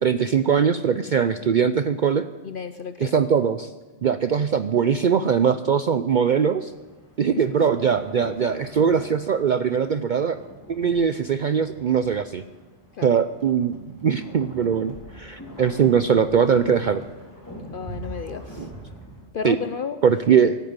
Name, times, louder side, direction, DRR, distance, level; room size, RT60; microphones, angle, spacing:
voice 1, 0.0-2.3 3.0-3.7 4.0-6.7 7.2-10.4 10.7-12.4 13.0-17.0 18.6-18.7 19.4-19.6 20.0-20.6, right 7 dB, 55° right, 11 dB, 0.6 m, -21 dB
voice 2, 2.4-3.1 7.4-7.5 13.0-13.1 17.7-18.7 19.3-20.0, left 6 dB, 55° left, 10 dB, 0.8 m, -32 dB
sound 1, 6.5-19.3, equal, 15° left, 3.9 m, -43 dB
17.5 x 8.8 x 9.5 m, 1.3 s
omnidirectional pair, 1.2 m